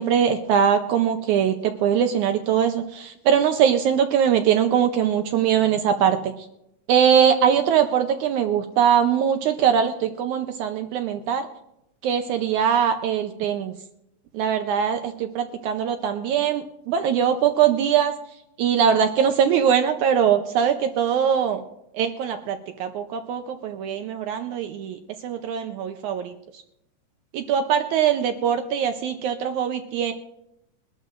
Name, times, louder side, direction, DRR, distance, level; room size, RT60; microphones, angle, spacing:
voice 1, 0.0-6.5 6.9-11.5 12.0-13.7 14.3-18.1 18.6-21.6 21.9-26.3 27.3-30.1, right 8 dB, 75° right, 7 dB, 2.0 m, -22 dB
22.5 x 12.0 x 2.5 m, 0.84 s
omnidirectional pair, 3.8 m